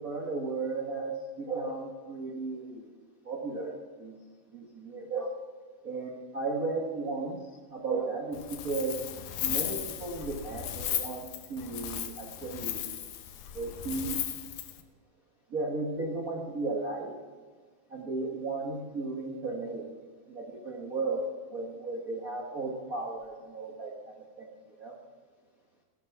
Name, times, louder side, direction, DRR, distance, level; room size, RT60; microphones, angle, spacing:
voice 1, 0.0-2.9 3.2-4.1 4.5-5.4 5.8-7.4 7.7-9.0 9.4-12.8 13.5-14.2 15.5-17.2 17.9-19.9 20.3-24.5 24.8-25.0, right 3 dB, 80° right, 0 dB, 0.7 m, -35 dB
Wind, 8.3-14.8, left 11 dB, 90° left, 2.8 m, -36 dB
16.5 x 11.5 x 5.8 m, 1.4 s
omnidirectional pair, 4.1 m